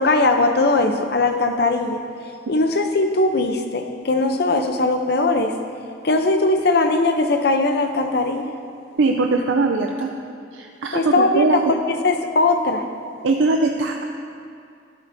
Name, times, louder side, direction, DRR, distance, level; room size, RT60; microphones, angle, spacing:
voice 1, 0.0-2.0 2.5-5.6 6.0-8.5 10.9-12.8, left 2 dB, 55° left, 6 dB, 0.7 m, -20 dB
voice 2, 9.0-10.1 10.5-11.6 13.2-14.0, right 3 dB, 80° right, 3 dB, 0.5 m, -20 dB
12.0 x 11.0 x 2.7 m, 2.4 s
head